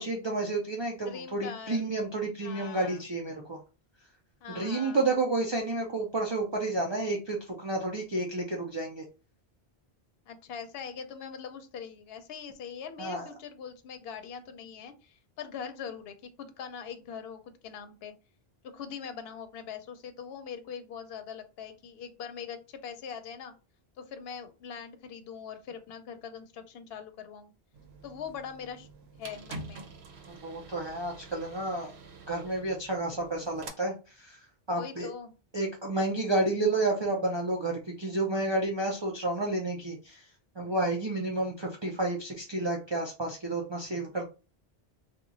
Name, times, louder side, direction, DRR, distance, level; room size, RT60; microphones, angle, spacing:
voice 1, 0.0-3.6 4.5-9.0 13.0-13.3 30.3-31.9 32.3-35.1 35.5-40.2 40.6-44.3, right 2 dB, 35° right, 0 dB, 0.5 m, -30 dB
voice 2, 1.0-1.9 2.4-3.0 4.4-5.0 10.3-18.2 18.7-23.5 24.0-27.5 28.0-28.9 29.2-29.8 34.7-35.3, left 7 dB, 75° left, 8 dB, 0.8 m, -42 dB
sound 1, 27.7-33.7, right 3 dB, 85° right, 0.9 m, -47 dB
2.9 x 2.3 x 3.8 m, 0.32 s
omnidirectional pair, 1.1 m